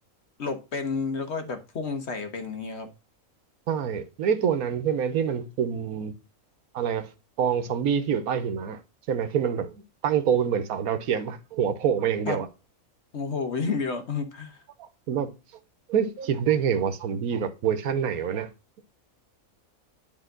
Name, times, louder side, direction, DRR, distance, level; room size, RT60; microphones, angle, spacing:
voice 1, 0.4-2.9 12.3-12.4 13.1-14.6, left 4 dB, 55° left, 1.2 m, -30 dB
voice 2, 3.7-6.1 6.7-7.1 7.4-8.8 9.1-9.8 10.0-12.5 14.8-15.3 15.9-18.5, right 8 dB, 85° right, 1.3 m, -26 dB
10.5 x 3.6 x 3.7 m
omnidirectional pair, 1.5 m